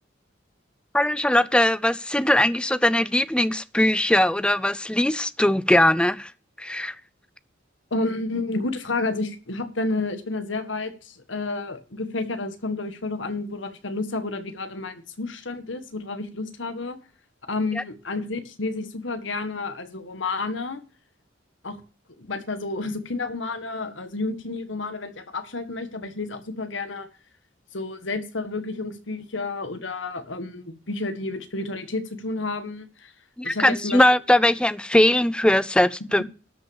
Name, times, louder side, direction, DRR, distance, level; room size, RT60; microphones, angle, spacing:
voice 1, 0.9-6.3 6.6-6.9 33.4-36.2, left 1 dB, 5° left, 0.5 m, -20 dB
voice 2, 7.9-17.0 17.5-20.8 21.6-21.8 22.2-27.1 27.7-33.1 33.4-34.0, left 3 dB, 75° left, 1.6 m, -30 dB
12.5 x 5.9 x 7.2 m
head